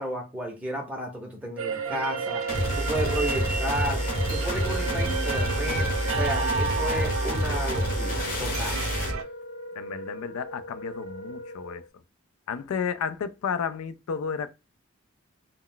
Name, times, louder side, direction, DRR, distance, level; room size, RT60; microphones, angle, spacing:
voice 1, 0.0-2.4 2.7-8.9, right 1 dB, 5° right, 0.6 m, -33 dB
sound 1, 1.6-9.2, right 5 dB, 70° right, 0.4 m, -32 dB
Wind instrument woodwind instrument, 1.8-11.9, equal, 60° left, 0.9 m, -39 dB
sound 2, 2.5-9.2, equal, 40° left, 0.7 m, -28 dB
voice 2, 9.8-11.8 12.5-14.5, left 6 dB, 80° left, 0.4 m, -32 dB
2.2 x 2.1 x 3.7 m
head